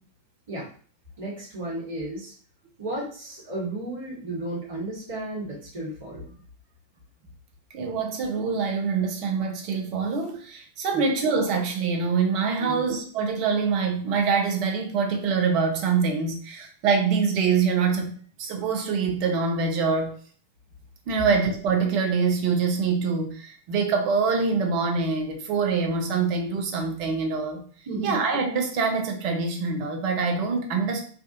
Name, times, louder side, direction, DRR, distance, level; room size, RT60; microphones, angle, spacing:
voice 1, 1.2-2.3 2.8-6.3 10.9-11.1 12.6-12.8 27.9-28.2, right 2 dB, 60° right, 1.3 m, -33 dB
voice 2, 7.7-18.1 18.4-20.2 21.1-27.7 28.0-31.0, right 5 dB, 45° right, 0.7 m, -25 dB
3.4 x 2.4 x 2.6 m
figure-of-eight pair, 90°, 0 cm